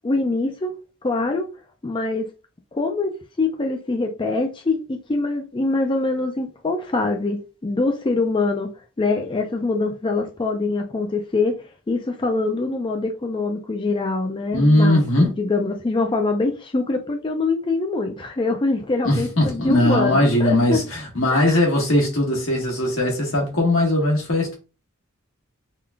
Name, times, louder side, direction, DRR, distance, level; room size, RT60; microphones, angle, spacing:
voice 1, 0.0-0.7 1.0-1.5 1.8-2.3 2.7-8.7 9.0-11.6 11.9-15.0 15.4-20.8 21.3-21.6, left 3 dB, 25° left, 0.4 m, -24 dB
voice 2, 14.5-15.3 19.0-24.5, left 1 dB, 80° left, 1.6 m, -19 dB
3.6 x 2.4 x 3.4 m
head